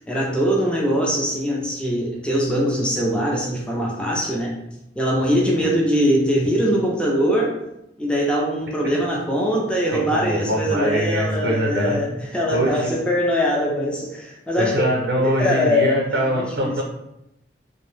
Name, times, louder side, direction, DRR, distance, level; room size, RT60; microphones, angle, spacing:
voice 1, 0.1-4.5 5.0-7.6 8.0-14.8 15.2-16.8, equal, 5° left, -3 dB, 0.4 m, -22 dB
voice 2, 9.9-12.0 12.5-13.0 14.6-16.8, equal, 80° right, -1 dB, 0.6 m, -23 dB
2.5 x 2.0 x 3.1 m, 0.84 s
head